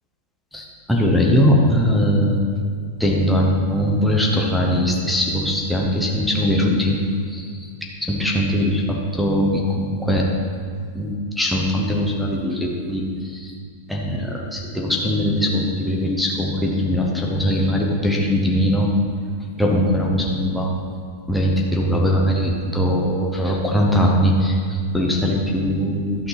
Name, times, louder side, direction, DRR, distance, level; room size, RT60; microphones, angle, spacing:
voice 1, 0.5-2.5 3.0-7.0 7.3-7.7 8.0-10.3 10.9-13.5 13.9-18.9 19.6-20.7 21.3-26.3, equal, ahead, -2 dB, 0.8 m, -20 dB
11.5 x 8.5 x 4.1 m, 2.1 s
supercardioid pair, 170°, 0 cm